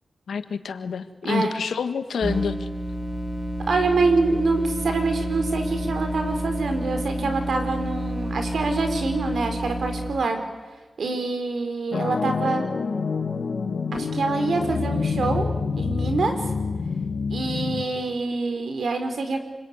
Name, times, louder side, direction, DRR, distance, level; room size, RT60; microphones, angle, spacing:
voice 1, 0.3-2.7 7.2-7.4, left 6 dB, 90° left, 10 dB, 1.5 m, -28 dB
voice 2, 1.2-1.6 3.7-10.4 11.0-12.7 13.9-16.3 17.3-19.4, right 3 dB, 80° right, 6 dB, 4.3 m, -25 dB
sound 1, 2.2-10.3, equal, 50° right, 7.6 m, -29 dB
sound 2, 11.9-17.8, left 5 dB, 75° left, 2.3 m, -27 dB
28.5 x 20.5 x 9.6 m, 1.3 s
cardioid pair, 50°, 0 cm